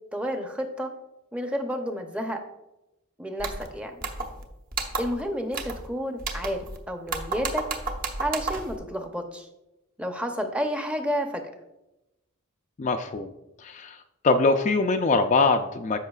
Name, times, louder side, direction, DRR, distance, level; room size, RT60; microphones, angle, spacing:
voice 1, 0.1-0.9 1.3-2.4 3.2-4.0 5.0-7.7 8.2-9.5 10.0-11.4, equal, 5° right, 4 dB, 0.7 m, -30 dB
sound 1, 3.4-3.7 4.0-4.4 4.7-5.2 5.5-5.9 6.2-6.8 7.1-8.8, right 4 dB, 40° right, 0.9 m, -32 dB
voice 2, 12.8-13.3 13.6-14.0 14.2-16.0, left 3 dB, 35° left, 5 dB, 0.3 m, -23 dB
13.5 x 5.7 x 2.4 m, 0.92 s
head